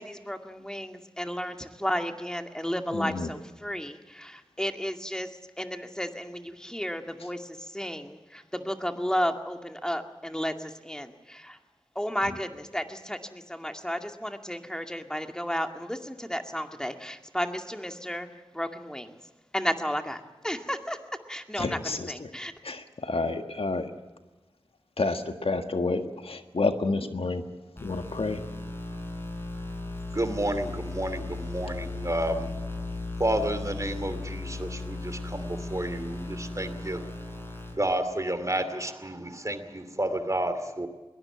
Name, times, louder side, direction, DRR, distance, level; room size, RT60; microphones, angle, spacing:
voice 1, 0.0-11.6 12.0-18.3 18.5-19.2 19.5-21.0 21.3-22.5, equal, 5° left, 5 dB, 2.2 m, -33 dB
voice 2, 2.9-3.3 21.6-22.3 22.6-23.9 25.0-27.4 27.8-28.4, left 3 dB, 75° left, 7 dB, 1.6 m, -29 dB
sound 1, 27.8-37.7, left 2 dB, 25° left, 6.8 m, -36 dB
voice 3, 30.1-32.5 33.2-37.0 37.7-40.9, right 1 dB, 35° right, 10 dB, 2.5 m, -30 dB
22.0 x 18.5 x 8.8 m, 1.1 s
wide cardioid pair, 55°, 10 cm